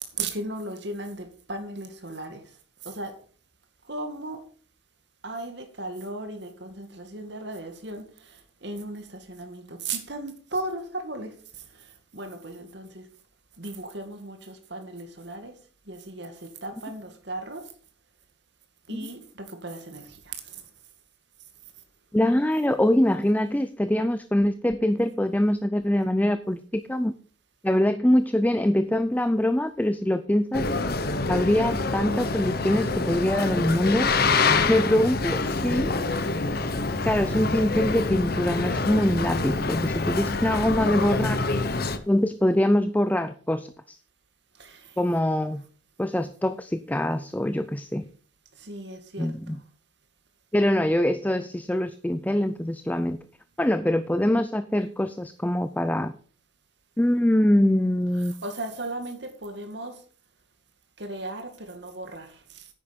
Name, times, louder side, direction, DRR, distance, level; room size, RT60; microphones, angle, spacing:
voice 1, 0.1-2.4 2.8-3.1 3.9-4.4 5.2-13.1 13.6-15.5 15.9-17.7 18.9-20.6 44.6-45.0 48.6-49.6 58.1-60.0 61.0-62.7, right 2 dB, 55° right, 6 dB, 2.2 m, -36 dB
voice 2, 22.1-27.1 27.6-30.7 31.3-34.1 34.7-35.9 37.1-41.4 42.1-44.0 45.0-45.6 46.0-48.0 49.2-49.6 50.5-53.2 53.6-56.1 57.0-58.3, left 1 dB, 10° left, 11 dB, 0.4 m, -24 dB
Boat Water vehicle, 30.5-42.0, left 3 dB, 50° left, 1.0 m, -26 dB
9.9 x 9.3 x 5.3 m, 0.44 s
head